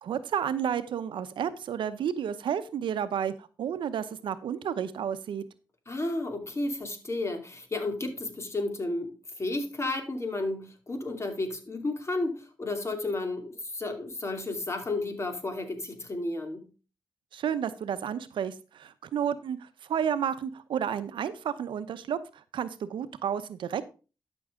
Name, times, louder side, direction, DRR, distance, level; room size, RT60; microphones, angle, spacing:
voice 1, 0.0-5.4 17.3-22.2 22.5-23.8, right 8 dB, 85° right, 0.8 m, -31 dB
voice 2, 5.9-9.1 9.4-16.6, left 2 dB, 35° left, 2.7 m, -32 dB
12.0 x 6.2 x 3.7 m
cardioid pair, 60°, 8 cm